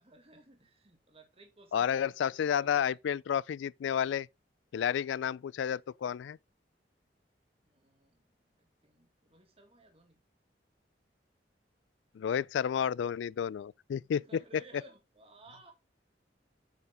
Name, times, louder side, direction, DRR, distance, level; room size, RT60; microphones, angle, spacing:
voice 1, 0.0-3.0 7.6-8.3 8.5-10.2 14.2-15.7, right 2 dB, 35° right, 2.1 m, -57 dB
voice 2, 1.7-4.3 4.7-6.4 12.1-14.2, left 8 dB, 90° left, 0.3 m, -31 dB
9.0 x 5.6 x 3.5 m
head